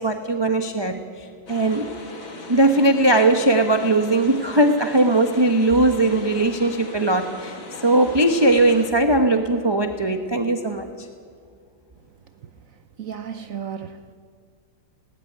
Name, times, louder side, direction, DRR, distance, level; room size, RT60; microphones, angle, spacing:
voice 1, 0.0-1.9 2.5-11.1, right 2 dB, 20° right, 0.7 m, -19 dB
sound 1, 1.5-8.9, left 2 dB, 80° left, 3.3 m, -39 dB
voice 2, 12.4-14.1, right 8 dB, 60° right, 0.9 m, -35 dB
19.5 x 18.0 x 9.9 m
omnidirectional pair, 2.2 m